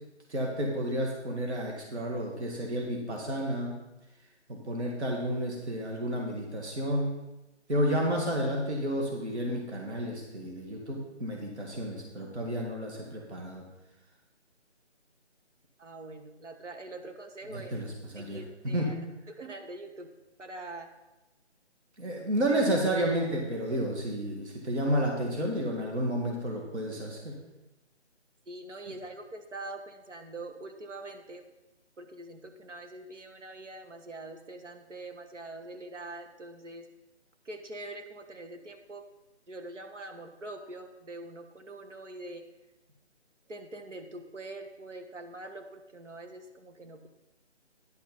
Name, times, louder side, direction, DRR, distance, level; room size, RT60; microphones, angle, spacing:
voice 1, 0.3-3.7 4.5-7.1 7.7-13.6 17.5-17.9 18.1-18.4 18.7-18.9 22.0-27.4, equal, 70° right, -1 dB, 2.1 m, -31 dB
voice 2, 15.8-17.8 18.1-18.9 19.3-20.1 20.4-20.9 28.5-31.5 32.0-36.9 37.4-39.1 39.5-42.4 43.5-47.1, right 2 dB, 85° right, 5 dB, 1.5 m, -44 dB
10.5 x 5.8 x 5.4 m, 0.98 s
hypercardioid pair, 180°, 35 cm